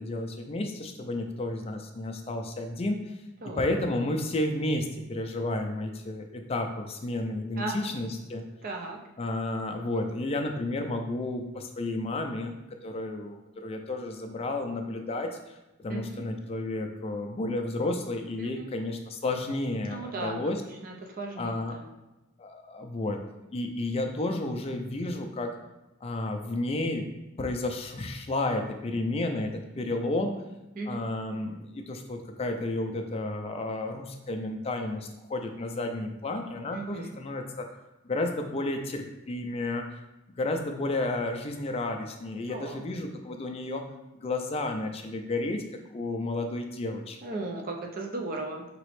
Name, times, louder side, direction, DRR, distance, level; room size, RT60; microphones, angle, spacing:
voice 1, 0.0-3.2 3.6-8.4 9.2-20.6 21.4-21.8 22.4-25.6 26.0-27.1 27.4-30.4 30.9-37.7 38.0-40.0 40.3-43.8 44.1-45.6 45.9-47.2, left 2 dB, 30° left, 4 dB, 0.4 m, -32 dB
voice 2, 7.6-8.0 8.6-9.0 15.9-16.3 18.4-18.7 19.8-20.6 20.8-21.9 30.7-31.1 36.7-37.2 42.5-42.8 47.2-48.7, right 2 dB, 40° right, 1 dB, 0.5 m, -36 dB
4.1 x 2.9 x 3.1 m, 1.0 s
head